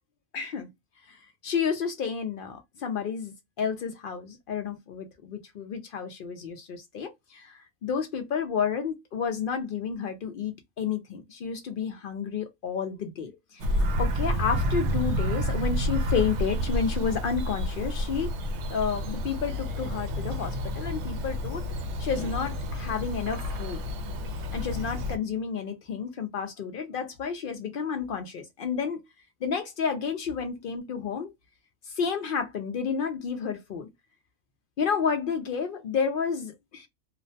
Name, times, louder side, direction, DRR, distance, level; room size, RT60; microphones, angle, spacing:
voice 1, 0.3-0.7 1.1-18.3 18.7-21.6 22.0-23.8 24.5-29.0 29.4-31.3 31.9-33.9 34.8-36.9, left 6 dB, 70° left, 0.5 m, -31 dB
Bird vocalization bird call bird song, 13.6-25.2, equal, 65° right, 0.8 m, -29 dB
2.5 x 2.0 x 2.6 m
omnidirectional pair, 1.4 m